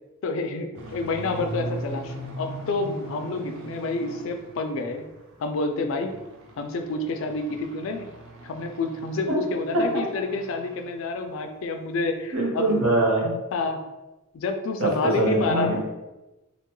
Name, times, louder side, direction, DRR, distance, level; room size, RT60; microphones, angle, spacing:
voice 1, 0.2-5.1 5.4-6.1 6.6-8.1 8.4-12.7 13.5-13.8 14.3-15.8, left 3 dB, 65° left, 5 dB, 0.3 m, -28 dB
sound 1, 0.7-5.3 5.7-10.9 11.2-11.5 11.9-12.0 12.3-12.4, right 2 dB, 65° right, 0.5 m, -40 dB
voice 2, 12.3-13.3 14.8-15.8, right 2 dB, 80° right, -4 dB, 1.0 m, -23 dB
2.8 x 2.2 x 3.0 m, 1.0 s
head